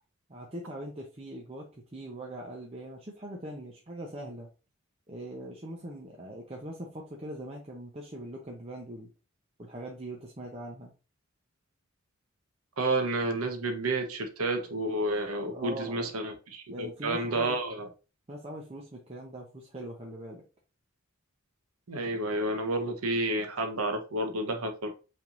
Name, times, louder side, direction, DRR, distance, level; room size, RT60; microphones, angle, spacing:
voice 1, 0.3-4.5 5.1-9.1 9.6-10.9 15.4-16.1 16.7-17.6 18.3-20.4, right 1 dB, 30° right, 0.7 m, -41 dB
voice 2, 12.8-17.9 21.9-24.9, right 2 dB, 90° right, 1.0 m, -30 dB
5.7 x 3.5 x 2.5 m
head